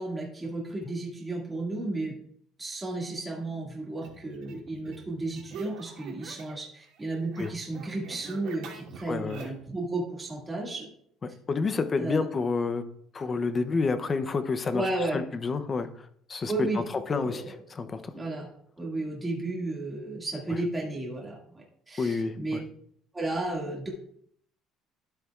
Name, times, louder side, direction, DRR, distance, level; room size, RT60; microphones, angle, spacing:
voice 1, 0.0-2.1 2.6-10.9 12.0-12.3 14.7-15.2 16.5-17.5 18.1-18.5 18.8-22.6 23.1-23.9, right 2 dB, 10° right, -3 dB, 2.0 m, -33 dB
sound 1, 4.0-6.7 6.9-9.7, right 6 dB, 70° right, 2.6 m, -45 dB
voice 2, 9.1-9.5 11.5-12.8 13.1-16.7 17.1-18.0 20.5-20.6 22.0-22.6, left 4 dB, 20° left, 10 dB, 0.6 m, -29 dB
12.5 x 8.0 x 2.4 m, 0.67 s
cardioid pair, 170°, 0 cm